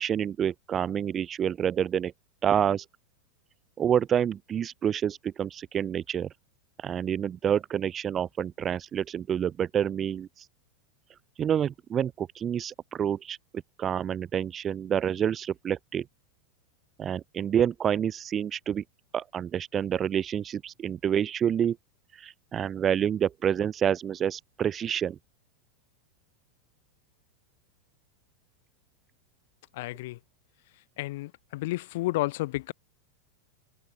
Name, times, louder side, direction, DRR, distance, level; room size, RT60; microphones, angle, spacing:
voice 1, 0.0-2.1 2.4-2.8 3.8-6.3 6.8-10.4 11.4-13.4 13.8-16.1 17.0-18.8 19.1-21.8 22.1-25.2, right 9 dB, 25° right, 0.9 m, -28 dB
voice 2, 29.7-30.2 31.0-32.7, left 19 dB, 50° left, 1.1 m, -31 dB
open air
figure-of-eight pair, 90°, 0 cm